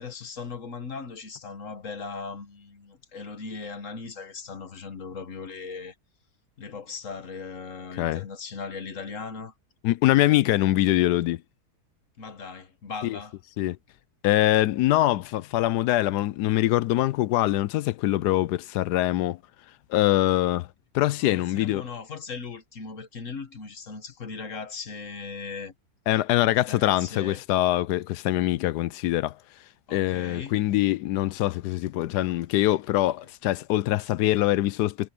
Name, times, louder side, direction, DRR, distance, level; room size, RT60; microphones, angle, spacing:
voice 1, 0.0-6.0 6.6-9.5 10.1-10.7 12.2-13.4 21.2-25.7 26.5-27.4 29.9-30.6, left 5 dB, 50° left, 1.7 m, -38 dB
voice 2, 9.8-11.4 13.0-13.2 13.6-13.8 14.2-19.4 19.9-20.7 20.9-21.8 26.1-29.4 29.9-35.1, left 15 dB, 85° left, 1.1 m, -23 dB
omnidirectional pair, 1.7 m